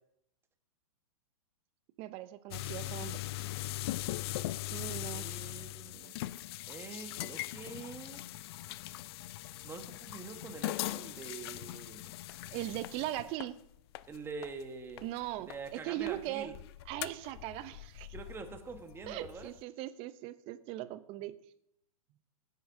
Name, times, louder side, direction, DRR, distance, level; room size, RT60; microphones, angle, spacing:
voice 1, 2.0-3.2 4.7-5.3 12.5-13.6 15.0-16.5 16.9-18.1 19.1-21.3, right 15 dB, 30° right, 14 dB, 0.7 m, -39 dB
sound 1, 2.5-15.7 16.0-19.6, left 16 dB, 45° left, 0.4 m, -41 dB
voice 2, 5.1-6.1 6.7-8.2 9.6-12.1 14.1-15.1 15.5-16.5 18.1-19.5, right 4 dB, 15° right, 5 dB, 1.3 m, -45 dB
16.5 x 9.5 x 2.7 m, 0.78 s
hypercardioid pair, 120°, 18 cm